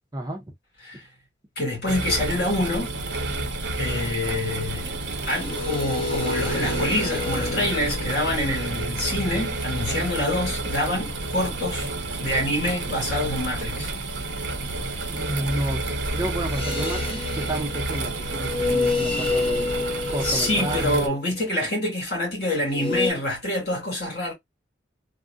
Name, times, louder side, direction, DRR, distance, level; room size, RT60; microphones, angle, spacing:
voice 1, 0.1-0.4 9.9-10.0 15.1-19.7 20.1-21.2, right 1 dB, 20° right, 0.6 m, -31 dB
voice 2, 1.6-2.9 3.8-5.0 5.3-11.9 12.2-13.9 20.2-24.3, left 1 dB, 55° left, 2.3 m, -26 dB
sound 1, 1.9-21.1, right 2 dB, 65° right, 0.7 m, -30 dB
sound 2, 5.1-10.7 16.4-21.1 22.7-23.1, left 3 dB, 30° left, 0.7 m, -30 dB
3.6 x 2.1 x 2.5 m
head